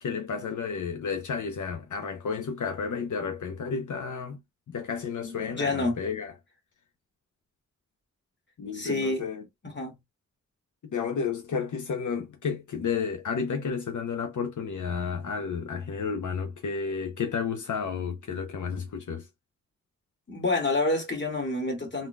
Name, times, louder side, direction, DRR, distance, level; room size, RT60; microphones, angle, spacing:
voice 1, 0.0-4.4 4.7-6.3 8.6-9.4 10.8-19.3, left 6 dB, 80° left, 0.8 m, -32 dB
voice 2, 5.2-6.0 8.7-9.2 9.6-10.0 20.3-22.1, left 2 dB, 40° left, 2.2 m, -28 dB
3.9 x 3.8 x 2.3 m
wide cardioid pair, 125°, 30 cm